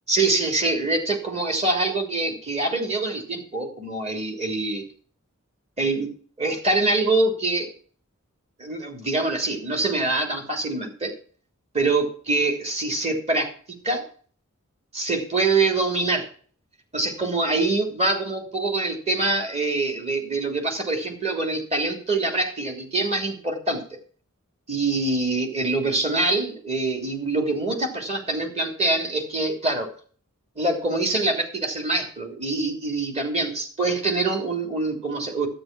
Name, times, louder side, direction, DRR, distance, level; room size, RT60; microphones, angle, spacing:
voice 1, 0.1-4.8 5.8-6.1 6.4-7.7 8.6-11.1 11.7-14.1 14.9-16.3 16.9-24.0 24.7-29.9 30.6-35.5, right 2 dB, 30° right, 4 dB, 3.2 m, -25 dB
12.5 x 8.7 x 6.1 m, 0.43 s
head